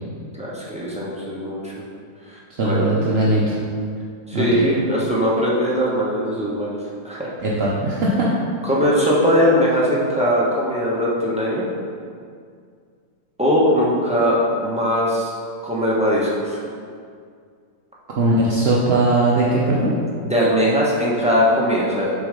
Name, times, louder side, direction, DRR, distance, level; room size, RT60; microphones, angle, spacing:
voice 1, 0.4-1.7 2.3-2.9 4.3-6.8 7.0-7.3 8.6-11.6 13.4-15.3 15.6-16.6 20.2-22.3, equal, 5° right, -6 dB, 0.7 m, -20 dB
voice 2, 2.6-3.6 4.3-4.7 7.4-8.3 18.2-19.9, right 2 dB, 55° right, -6 dB, 0.7 m, -19 dB
6.8 x 4.0 x 5.1 m, 2.2 s
omnidirectional pair, 2.0 m